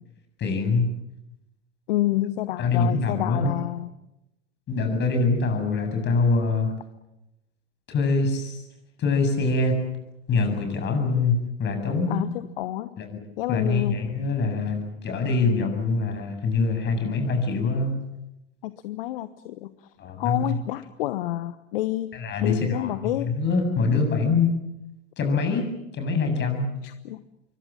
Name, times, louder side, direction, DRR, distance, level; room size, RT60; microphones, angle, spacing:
voice 1, 0.4-0.9 2.6-3.5 4.7-6.7 7.9-8.6 9.0-9.8 10.3-12.2 13.0-13.1 13.5-18.0 20.0-20.4 22.1-22.9 23.2-24.5 25.2-25.7 25.9-26.7, left 3 dB, 35° left, 6 dB, 7.6 m, -24 dB
voice 2, 1.9-3.9 12.1-13.0 13.4-14.0 18.6-19.9 20.2-23.4 26.8-27.2, left 15 dB, 60° left, 14 dB, 1.1 m, -29 dB
26.5 x 24.0 x 7.6 m, 0.90 s
figure-of-eight pair, 85°, 32 cm